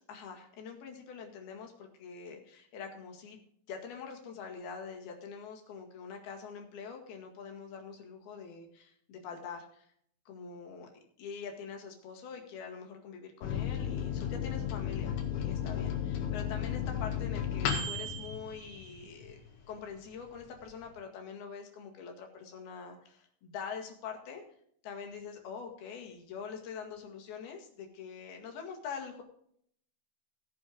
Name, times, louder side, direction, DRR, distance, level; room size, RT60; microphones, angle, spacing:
voice 1, 0.1-3.4 3.7-9.9 10.3-19.4 19.7-24.4 24.8-29.2, left 6 dB, 60° left, 3 dB, 3.6 m, -44 dB
Microwave oven, 13.4-19.5 19.9-20.0 20.3-20.9, left 8 dB, 85° left, 4.3 m, -34 dB
16.5 x 6.9 x 5.1 m, 0.64 s
omnidirectional pair, 5.3 m